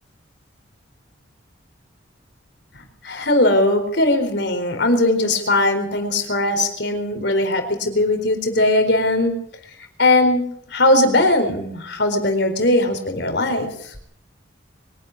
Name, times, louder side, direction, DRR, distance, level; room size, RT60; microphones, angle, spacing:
voice 1, 3.0-9.3 10.0-10.5 10.7-13.7, left 1 dB, 60° left, 6 dB, 4.3 m, -19 dB
23.5 x 11.5 x 9.8 m, 0.67 s
head